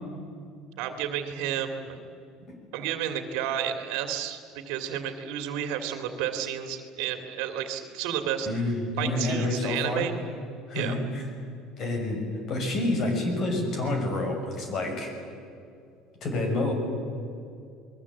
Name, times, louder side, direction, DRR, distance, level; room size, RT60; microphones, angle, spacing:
voice 1, 0.8-2.0 2.7-4.4 4.7-8.7 9.0-10.1 10.7-11.0, right 9 dB, 75° right, 7 dB, 2.6 m, -31 dB
voice 2, 8.5-10.1 10.7-11.2 11.8-12.2 12.5-15.1 16.2-16.7, left 2 dB, 40° left, 3 dB, 6.0 m, -28 dB
28.5 x 21.5 x 8.6 m, 2.4 s
cardioid pair, 160°, 0 cm